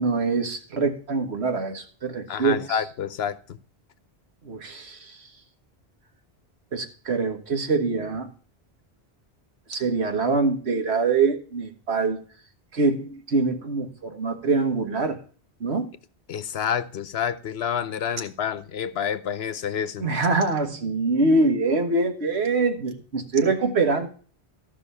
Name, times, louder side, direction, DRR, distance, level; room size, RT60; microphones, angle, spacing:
voice 1, 0.0-2.8 4.4-5.2 6.7-8.3 9.7-12.2 12.7-15.2 15.6-15.9 20.0-24.1, right 3 dB, 75° right, 6 dB, 1.7 m, -24 dB
voice 2, 2.3-3.6 16.3-20.1, left 8 dB, 70° left, 13 dB, 1.0 m, -28 dB
14.0 x 5.5 x 5.5 m, 0.43 s
omnidirectional pair, 1.1 m